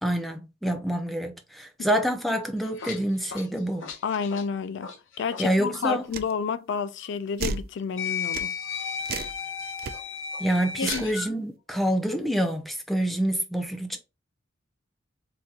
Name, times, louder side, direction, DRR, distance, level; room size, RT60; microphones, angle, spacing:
voice 1, 0.0-3.9 5.4-6.0 10.4-14.0, equal, ahead, 0.5 m, -27 dB
sound 1, 2.4-5.5 5.7-5.9 7.0-7.1 8.0-11.3, left 6 dB, 80° left, 0.8 m, -34 dB
voice 2, 4.0-4.9 5.2-8.5 10.8-11.0, left 6 dB, 65° left, 0.4 m, -30 dB
sound 2, 6.1-6.3 7.4-7.7 8.3-8.5 9.0-9.4 9.8-9.9 10.8-11.1, right 5 dB, 50° right, 0.4 m, -32 dB
3.8 x 2.8 x 2.4 m
head